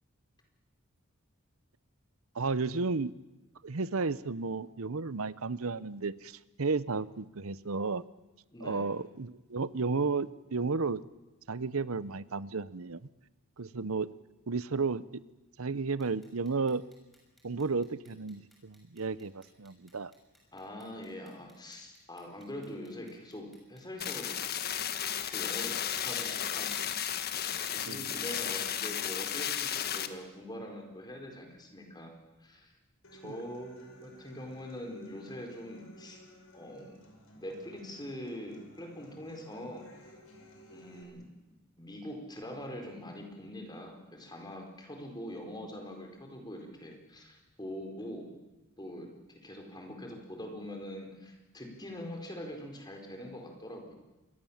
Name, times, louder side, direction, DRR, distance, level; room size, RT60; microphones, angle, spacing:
voice 1, 2.3-3.1 3.6-8.0 8.6-11.0 11.5-13.1 13.6-14.1 14.5-15.2 15.6-16.8 17.4-20.1 27.9-28.1 33.2-33.3, right 4 dB, 80° right, 17 dB, 0.8 m, -33 dB
voice 2, 8.5-8.9 20.5-24.3 25.1-26.7 27.6-32.1 32.4-32.7 33.1-36.2 36.5-37.0 37.3-40.0 40.7-41.2 41.8-48.3 48.8-53.9, equal, 20° left, 3 dB, 4.5 m, -43 dB
Clock, 16.0-28.0, equal, ahead, 6.7 m, -59 dB
sound 1, 24.0-30.1, left 9 dB, 45° left, 1.4 m, -34 dB
Human voice / Acoustic guitar, 33.0-41.0, equal, 70° left, 5.8 m, -55 dB
27.0 x 22.0 x 7.3 m, 1.0 s
head